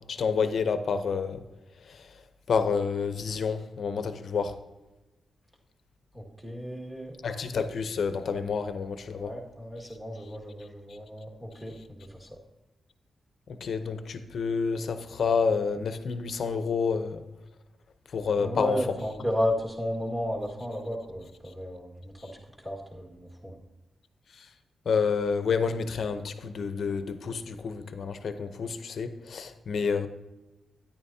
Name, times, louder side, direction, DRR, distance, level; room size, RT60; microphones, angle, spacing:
voice 1, 0.1-1.4 1.9-2.1 2.5-4.6 7.2-9.3 13.5-17.2 18.1-18.9 24.3-24.5 24.9-30.1, left 5 dB, 60° left, 0.8 m, -29 dB
voice 2, 6.1-7.1 9.2-11.8 12.1-12.3 18.4-22.3 22.6-23.6, left 1 dB, 10° right, 1.9 m, -33 dB
13.0 x 10.0 x 2.8 m
wide cardioid pair, 175°, 0 cm